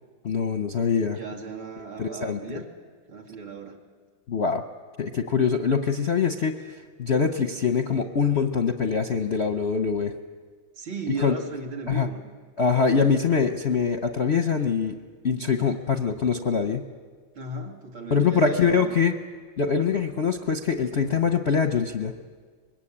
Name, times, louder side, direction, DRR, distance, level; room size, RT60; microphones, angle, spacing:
voice 1, 0.2-1.2 2.0-2.4 4.3-4.6 5.0-10.1 11.2-11.3 11.9-12.1 12.6-15.0 15.2-16.8 18.1-19.1 19.6-22.1, left 6 dB, 50° left, 7 dB, 0.7 m, -23 dB
voice 2, 1.1-2.7 3.1-3.8 10.7-12.2 17.3-19.1, right 3 dB, 70° right, 0 dB, 3.1 m, -36 dB
24.5 x 21.0 x 8.7 m, 1.6 s
omnidirectional pair, 2.2 m